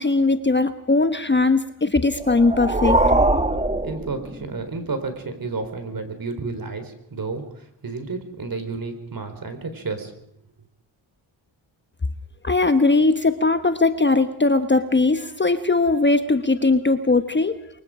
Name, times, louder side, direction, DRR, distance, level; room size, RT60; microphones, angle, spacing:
voice 1, 0.0-3.0 12.4-17.6, left 3 dB, 20° left, 9 dB, 1.2 m, -19 dB
sound 1, 2.1-4.7, right 2 dB, 15° right, 1.7 m, -22 dB
voice 2, 3.8-10.1, right 3 dB, 45° right, 8 dB, 4.3 m, -31 dB
23.5 x 21.5 x 5.1 m, 0.76 s
supercardioid pair, 60°, 48 cm